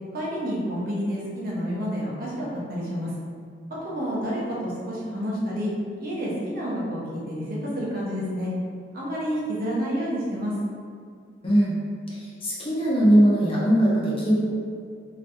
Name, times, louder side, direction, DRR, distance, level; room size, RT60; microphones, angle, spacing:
voice 1, 0.1-3.1 3.8-5.7 6.0-8.5 8.9-10.5, equal, 55° right, -6 dB, 1.0 m, -29 dB
voice 2, 11.4-11.8 12.1-14.4, right 1 dB, 30° left, -7 dB, 1.0 m, -20 dB
4.1 x 3.1 x 2.7 m, 2.2 s
head